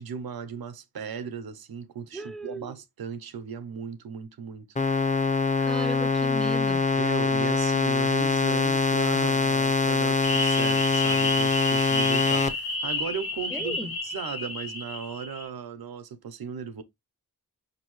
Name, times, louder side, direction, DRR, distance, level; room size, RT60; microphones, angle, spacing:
voice 1, 0.0-4.7 7.0-16.8, right 7 dB, 85° right, 0.6 m, -37 dB
voice 2, 2.1-2.7 5.6-6.8 13.5-13.9, right 1 dB, ahead, 0.3 m, -36 dB
sound 1, 4.8-12.5, left 4 dB, 20° left, 0.7 m, -24 dB
sound 2, 10.2-15.5, left 2 dB, 80° left, 1.1 m, -31 dB
5.0 x 2.6 x 2.9 m
cardioid pair, 50°, 36 cm